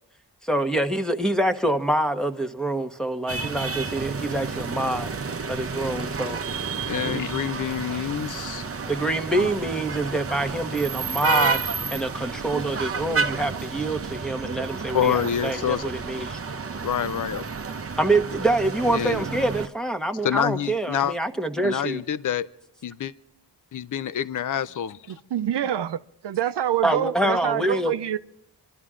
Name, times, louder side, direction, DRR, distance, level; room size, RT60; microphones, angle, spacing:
voice 1, 0.4-5.1 5.5-6.4 7.0-7.2 8.8-16.4 18.0-22.0 26.8-27.9, right 1 dB, ahead, 1.3 m, -26 dB
sound 1, 3.3-19.7, right 4 dB, 35° right, 0.8 m, -30 dB
voice 2, 6.9-8.6 9.4-9.5 14.9-15.9 16.8-17.5 18.9-19.2 20.2-21.1 21.6-22.5 22.8-23.1 23.7-25.1, left 9 dB, 50° left, 0.6 m, -27 dB
voice 3, 25.1-28.2, right 10 dB, 80° right, 0.6 m, -26 dB
26.5 x 12.5 x 3.7 m
cardioid pair, 60°, 41 cm